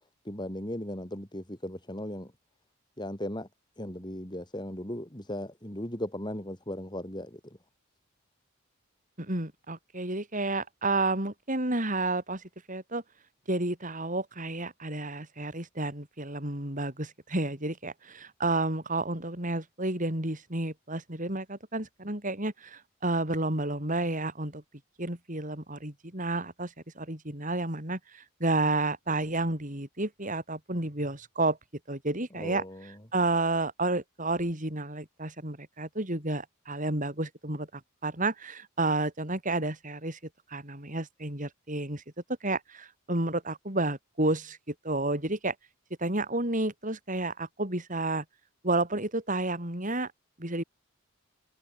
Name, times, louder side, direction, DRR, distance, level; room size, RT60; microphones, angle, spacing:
voice 1, 0.3-2.3 3.0-3.5 3.8-7.4 32.4-32.9, left 1 dB, 20° left, 5.7 m, -37 dB
voice 2, 9.2-13.0 13.5-24.6 25.0-31.6 31.9-40.2 40.5-42.0 42.4-45.5 46.0-48.2 48.6-50.1 50.4-50.6, right 2 dB, 40° right, 5.0 m, -31 dB
head